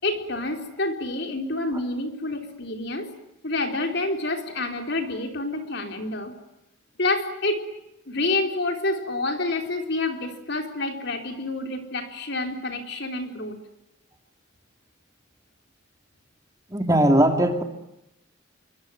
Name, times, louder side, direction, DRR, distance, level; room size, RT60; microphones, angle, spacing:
voice 1, 0.0-3.1 3.4-6.3 7.0-7.7 8.1-13.6, left 2 dB, 55° left, 5 dB, 4.1 m, -28 dB
voice 2, 16.7-17.6, right 1 dB, 15° right, 6 dB, 2.6 m, -19 dB
26.5 x 24.0 x 9.3 m, 0.86 s
head